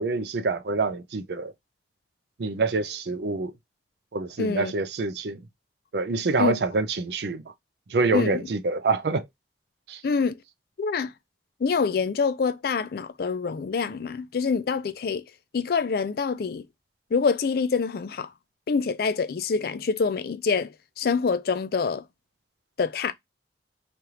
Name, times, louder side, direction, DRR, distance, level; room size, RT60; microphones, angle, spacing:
voice 1, 0.0-1.5 2.4-3.5 4.1-5.4 5.9-7.5 7.9-9.3 9.9-10.0, right 3 dB, 70° right, 0.5 m, -26 dB
voice 2, 4.4-4.7 6.4-6.5 8.1-8.4 10.0-10.4 10.8-11.1 11.6-15.2 15.5-16.6 17.1-18.3 18.7-22.0 22.8-23.1, left 5 dB, 60° left, 0.4 m, -26 dB
3.2 x 2.4 x 2.8 m
head